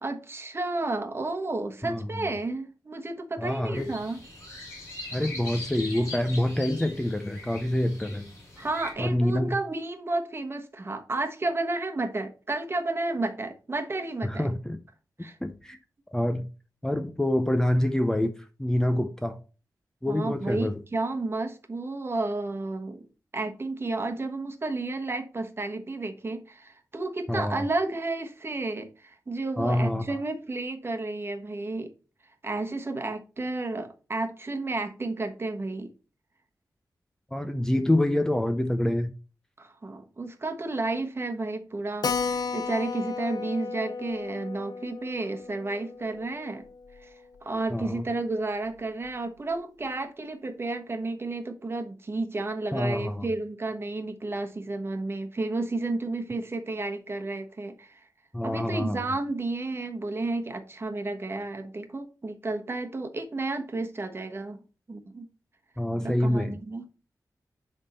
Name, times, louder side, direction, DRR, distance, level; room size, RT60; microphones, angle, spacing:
voice 1, 0.0-4.2 8.6-14.5 15.2-15.4 20.1-23.0 23.3-31.9 32.4-35.9 39.6-46.6 47.0-47.1 47.4-58.0 58.4-64.6 64.9-65.3 66.0-66.8, right 2 dB, 35° right, 1.1 m, -32 dB
voice 2, 1.8-2.3 3.4-3.9 5.1-8.3 9.0-9.6 14.2-14.8 15.2-15.8 16.1-16.5 16.8-18.3 18.6-19.4 20.0-20.7 27.3-27.6 29.6-30.2 37.3-39.1 47.7-48.0 52.7-53.3 58.3-59.0 65.8-66.6, left 1 dB, 10° left, 0.6 m, -26 dB
sound 1, 3.7-8.9, left 2 dB, 35° left, 4.7 m, -41 dB
Keyboard (musical), 42.0-47.1 47.4-47.5 47.7-47.8 48.1-48.2 48.8-49.1, left 5 dB, 70° left, 0.6 m, -34 dB
10.5 x 3.6 x 4.2 m
wide cardioid pair, 130°, 7 cm